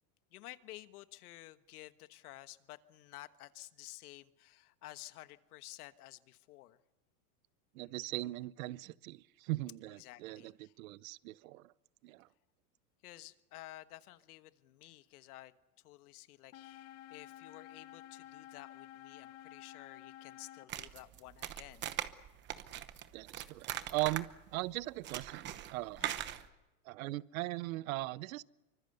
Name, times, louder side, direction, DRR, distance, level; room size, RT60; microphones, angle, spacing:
voice 1, 0.3-6.8 10.0-10.7 13.0-15.5 15.8-21.9 26.0-26.2, left 17 dB, 70° left, 12 dB, 1.4 m, -53 dB
voice 2, 7.7-11.7 12.0-12.3 23.1-26.0 26.8-28.4, right 19 dB, 60° right, 20 dB, 0.8 m, -39 dB
sound 1, 16.5-20.6, left 13 dB, 30° left, 1.2 m, -52 dB
sound 2, 20.7-26.5, right 12 dB, 25° right, 0.9 m, -41 dB
25.5 x 24.5 x 6.8 m, 1.0 s
supercardioid pair, 155°, 46 cm